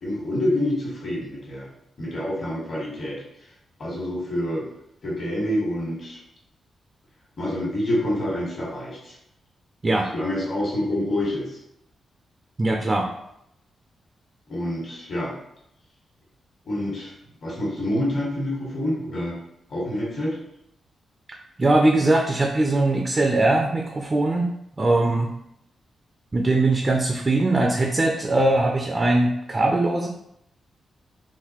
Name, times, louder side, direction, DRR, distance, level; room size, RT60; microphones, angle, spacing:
voice 1, 0.0-1.7 2.0-3.2 3.8-4.6 5.0-6.2 7.4-9.1 10.1-11.6 14.5-15.3 16.6-17.1 17.4-19.4 19.7-20.4, left 1 dB, 55° left, -4 dB, 1.5 m, -27 dB
voice 2, 12.6-13.1 21.6-24.5 24.8-25.3 26.3-30.1, right 2 dB, 30° right, 2 dB, 0.4 m, -21 dB
3.9 x 2.4 x 2.9 m, 0.78 s
cardioid pair, 75°, 0 cm